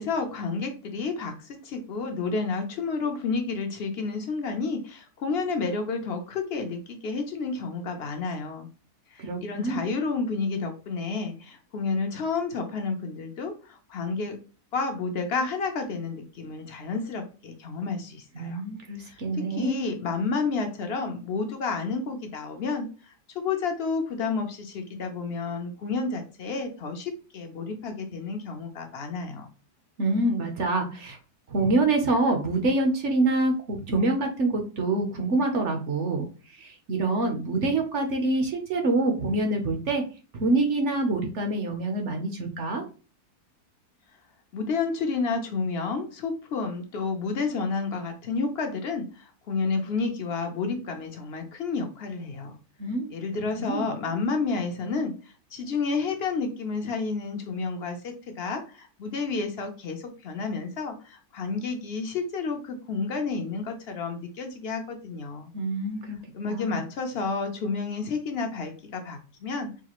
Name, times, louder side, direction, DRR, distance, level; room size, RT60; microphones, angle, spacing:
voice 1, 0.0-8.7 9.1-14.4 14.7-18.6 19.0-29.5 44.5-52.6 53.1-55.1 55.5-65.5 66.3-69.8, left 4 dB, 65° left, 5 dB, 0.6 m, -30 dB
voice 2, 9.2-9.8 18.3-19.8 30.0-31.2 31.5-36.2 36.5-40.0 40.3-42.8 52.8-53.1 53.3-53.9 65.5-66.2 66.5-66.8, right 2 dB, 60° right, 3 dB, 0.9 m, -26 dB
4.8 x 2.4 x 2.9 m, 0.35 s
omnidirectional pair, 1.7 m